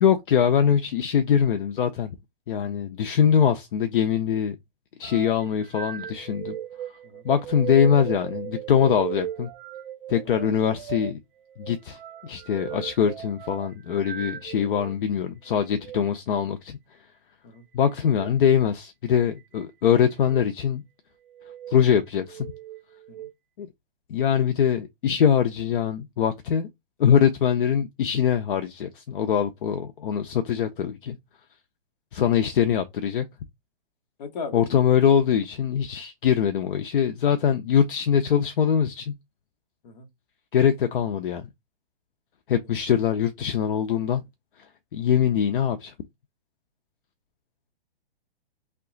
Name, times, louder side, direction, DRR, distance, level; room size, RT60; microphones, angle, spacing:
voice 1, 0.0-2.2 2.5-4.6 5.0-6.6 7.2-9.5 10.1-11.2 11.6-16.8 17.7-20.8 21.7-22.5 23.6-23.7 24.1-26.7 27.0-31.2 32.1-33.2 34.5-39.1 40.5-41.5 42.5-44.2 44.9-45.9, left 8 dB, 60° left, 0.6 m, -23 dB
sound 1, 5.0-15.0 15.7-16.0 18.0-18.3 19.1-19.6 20.2-20.5 21.3-21.8 22.3-23.3, right 11 dB, 60° right, 0.5 m, -37 dB
voice 2, 34.2-34.6 39.8-40.1 42.6-42.7, left 5 dB, 45° left, 1.0 m, -38 dB
2.8 x 2.2 x 3.8 m
hypercardioid pair, 140°, 31 cm